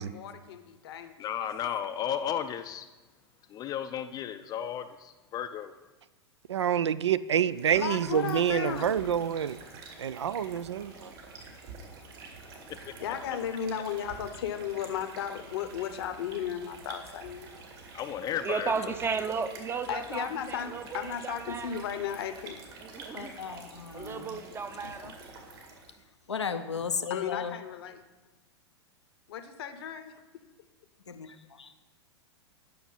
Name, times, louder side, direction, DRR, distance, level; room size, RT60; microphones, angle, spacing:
voice 1, 0.0-1.1 7.7-8.9 13.0-17.5 19.9-22.6 27.1-28.0 29.3-30.1, left 9 dB, 60° left, 8 dB, 0.8 m, -35 dB
voice 2, 1.2-2.9 3.5-5.7 17.9-18.9, left 9 dB, 25° left, 9 dB, 0.4 m, -34 dB
voice 3, 6.5-9.6 10.0-11.1, right 9 dB, 80° right, 16 dB, 0.4 m, -27 dB
sound 1, 7.4-26.0, right 4 dB, 55° right, 2.1 m, -48 dB
voice 4, 18.4-21.8 22.8-23.3 23.9-25.2, right 5 dB, 15° right, 10 dB, 0.6 m, -34 dB
voice 5, 23.1-24.4 24.8-25.1 26.3-27.5 31.1-31.7, left 6 dB, 85° left, 8 dB, 0.6 m, -36 dB
9.4 x 6.0 x 5.5 m, 1.1 s
figure-of-eight pair, 100°, 14 cm